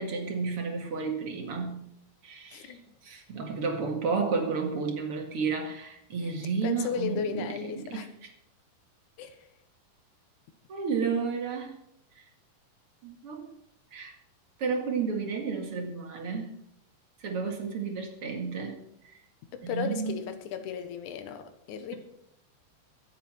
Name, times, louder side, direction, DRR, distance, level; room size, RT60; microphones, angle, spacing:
voice 1, 0.0-1.9 2.2-8.3 10.7-11.8 12.2-12.3 13.0-13.5 13.9-14.1 14.6-16.6 17.2-18.8 19.0-19.2 19.6-20.2, right 5 dB, 45° right, 3 dB, 2.5 m, -32 dB
voice 2, 6.6-8.1 9.2-9.4 19.5-21.9, left 7 dB, 65° left, 8 dB, 2.6 m, -35 dB
24.0 x 8.2 x 4.4 m, 0.74 s
omnidirectional pair, 4.0 m